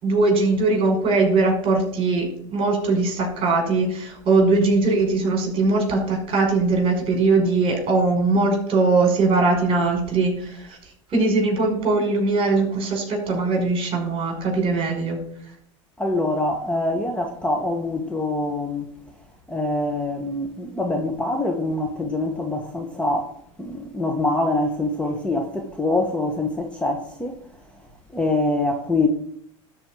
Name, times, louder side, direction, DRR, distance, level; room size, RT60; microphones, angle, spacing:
voice 1, 0.0-10.8 11.1-15.2, right 3 dB, 35° right, 5.3 m, -21 dB
voice 2, 16.0-18.9 19.5-23.3 23.6-27.3 28.1-29.1, left 2 dB, 5° left, 1.5 m, -24 dB
12.5 x 4.7 x 7.5 m
hypercardioid pair, 105°, 16 cm